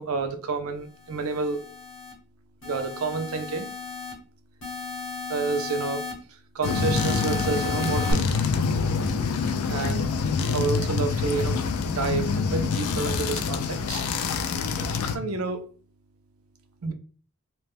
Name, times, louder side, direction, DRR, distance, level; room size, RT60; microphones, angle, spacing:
voice 1, 0.0-1.7 2.6-3.7 5.3-8.3 9.7-10.1 10.5-11.6 11.9-14.1 15.1-15.7 16.8-16.9, right 4 dB, 75° right, 0.5 m, -29 dB
sound 1, 1.0-2.1 2.6-4.1 4.6-6.1 6.6-8.1, left 5 dB, 60° left, 1.1 m, -34 dB
sound 2, 6.6-15.2, left 5 dB, 80° left, 0.4 m, -26 dB
2.9 x 2.1 x 3.4 m
head